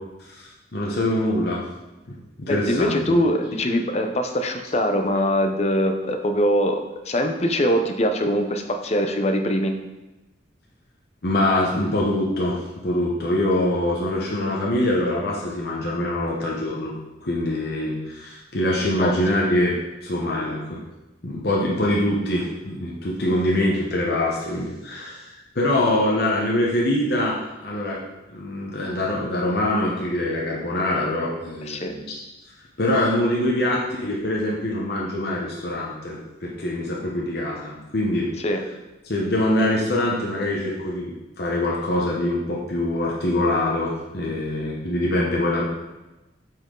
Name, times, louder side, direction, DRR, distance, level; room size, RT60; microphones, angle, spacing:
voice 1, 0.2-1.6 2.1-3.1 11.2-16.9 17.2-19.7 20.0-20.8 21.2-28.0 28.3-32.0 32.8-38.3 39.0-45.6, left 1 dB, 60° left, -4 dB, 0.9 m, -24 dB
voice 2, 2.5-6.8 7.1-9.8 19.0-19.4 31.7-31.9 38.4-38.6, equal, 35° left, 5 dB, 0.6 m, -22 dB
7.7 x 4.5 x 3.8 m, 1.0 s
head